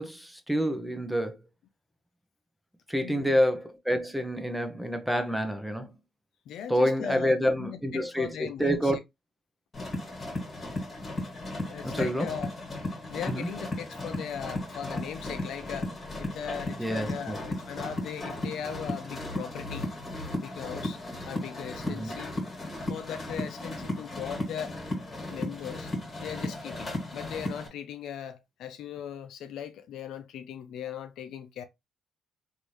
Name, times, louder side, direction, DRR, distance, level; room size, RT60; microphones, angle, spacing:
voice 1, 0.0-1.4 2.9-5.9 6.7-9.0 11.8-12.3 13.3-13.5 16.8-17.4 21.8-22.1, equal, ahead, 0.8 m, -28 dB
voice 2, 3.0-3.3 6.5-8.9 11.6-12.5 13.1-19.9 20.3-21.0 21.3-22.3 22.9-24.8 25.3-25.9 26.2-31.6, left 8 dB, 80° left, 0.5 m, -39 dB
sound 1, 9.7-27.7, left 1 dB, 40° left, 1.9 m, -35 dB
3.4 x 2.7 x 3.0 m
cardioid pair, 90°, 0 cm